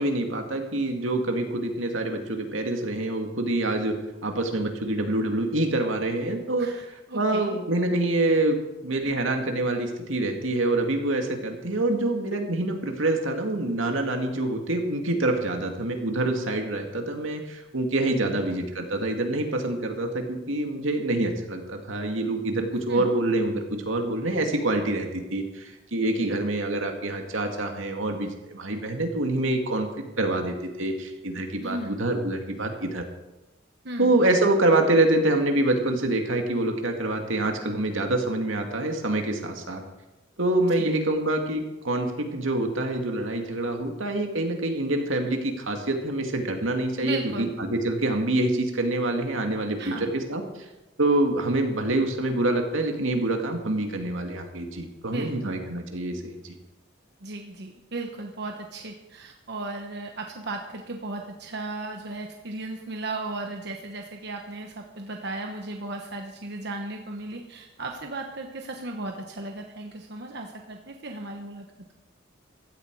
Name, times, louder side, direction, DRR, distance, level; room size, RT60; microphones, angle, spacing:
voice 1, 0.0-3.9 4.2-6.7 7.1-8.6 8.8-29.9 30.2-33.0 34.0-39.8 40.4-50.7 51.0-56.6, right 2 dB, 85° right, 3 dB, 2.3 m, -26 dB
voice 2, 6.6-7.6 18.2-18.4 22.9-23.1 26.2-26.4 31.6-32.0 33.8-34.1 40.8-40.9 47.0-47.5 49.8-50.1 55.0-55.5 57.2-71.7, right 2 dB, 55° right, 3 dB, 1.1 m, -36 dB
16.0 x 13.5 x 4.8 m, 1.0 s
head